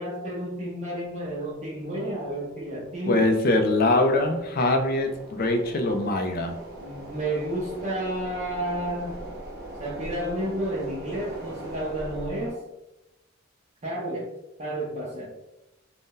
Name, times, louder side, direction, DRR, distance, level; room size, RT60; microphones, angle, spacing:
voice 1, 0.0-3.3 6.8-9.1 9.8-12.7 13.8-14.3 14.6-15.3, right 1 dB, 35° right, -7 dB, 0.6 m, -31 dB
sound 1, 1.0-12.5, right 1 dB, 55° right, 1.0 m, -42 dB
voice 2, 3.0-6.6, left 2 dB, 50° left, 5 dB, 0.4 m, -23 dB
2.6 x 2.1 x 3.6 m, 0.94 s
head